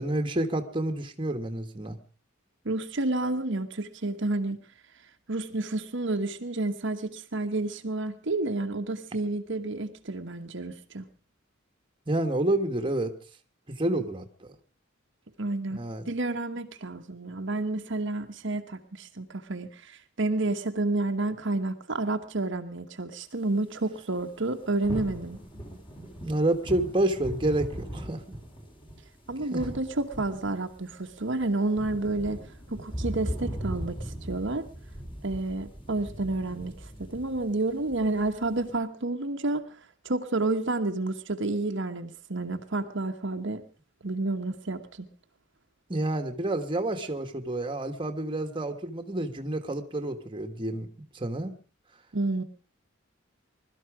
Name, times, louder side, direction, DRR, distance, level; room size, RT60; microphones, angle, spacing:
voice 1, 0.0-2.0 12.1-13.1 13.7-14.5 15.7-16.0 26.2-28.2 29.5-29.6 45.9-51.6, right 1 dB, 25° right, 1.5 m, -29 dB
voice 2, 2.6-4.6 5.3-11.1 15.4-15.8 16.1-25.4 29.3-32.4 32.7-34.7 35.2-39.7 40.0-43.6 44.0-45.1 52.1-52.4, right 2 dB, 65° right, 1.2 m, -30 dB
sound 1, 24.2-38.8, equal, 25° left, 3.8 m, -39 dB
21.5 x 13.0 x 4.9 m
head